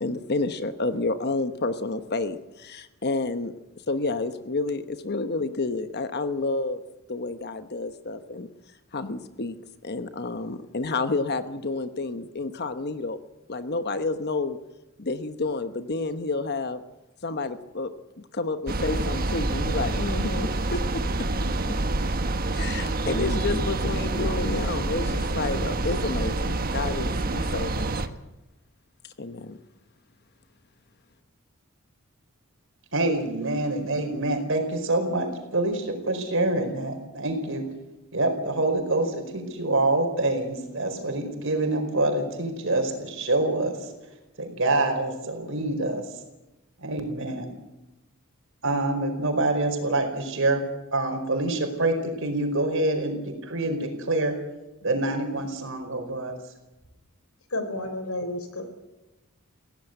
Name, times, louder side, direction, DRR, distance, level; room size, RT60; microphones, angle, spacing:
voice 1, 0.0-3.5 3.9-6.8 7.1-8.5 8.9-9.6 9.8-13.2 13.5-14.6 15.0-16.8 17.2-17.9 18.3-21.0 22.5-28.1 29.2-29.6, left 3 dB, 50° left, 10 dB, 1.1 m, -30 dB
sound 1, 18.7-28.1, right 2 dB, 45° right, 1.3 m, -27 dB
voice 2, 32.9-37.6 38.1-43.9 44.4-46.0 46.8-47.5 48.6-50.6 50.9-54.3 54.8-56.3, right 2 dB, 65° right, 5 dB, 4.9 m, -26 dB
voice 3, 57.5-58.7, left 1 dB, 75° left, 8 dB, 4.8 m, -31 dB
21.5 x 17.0 x 8.1 m, 0.99 s
head